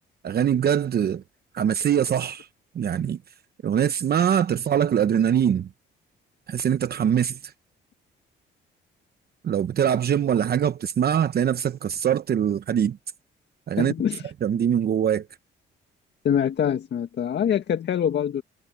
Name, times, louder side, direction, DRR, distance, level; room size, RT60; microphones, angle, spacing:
voice 1, 0.2-1.2 1.5-2.5 2.7-3.2 3.6-5.7 6.5-7.5 9.4-13.0 13.7-13.9 14.4-15.3, right 9 dB, 50° right, 0.9 m, -23 dB
voice 2, 13.8-14.3 16.2-18.4, left 9 dB, 60° left, 1.8 m, -24 dB
cardioid pair, 90°, 20 cm